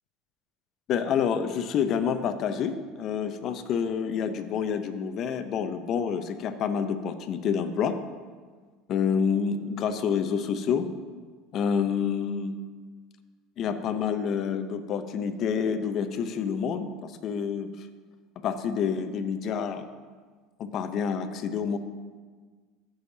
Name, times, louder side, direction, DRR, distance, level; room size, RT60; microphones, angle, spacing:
voice 1, 0.9-8.0 8.9-10.9 11.5-12.5 13.6-17.7 18.4-19.8 20.6-21.8, left 7 dB, 50° left, 9 dB, 0.7 m, -28 dB
14.5 x 6.4 x 2.8 m, 1.5 s
supercardioid pair, 105°, 0 cm